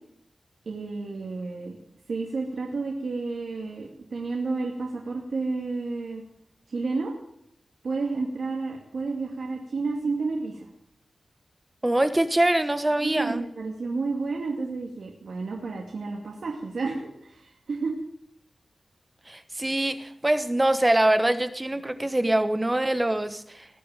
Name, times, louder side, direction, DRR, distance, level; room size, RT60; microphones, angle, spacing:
voice 1, 0.7-1.8 2.1-6.2 6.7-7.1 7.8-10.7 13.0-18.0, right 3 dB, 75° right, -1 dB, 2.4 m, -31 dB
voice 2, 11.8-13.4 19.3-23.7, right 1 dB, 20° right, 10 dB, 1.1 m, -24 dB
20.0 x 6.7 x 9.1 m, 0.77 s
wide cardioid pair, 75°, 0 cm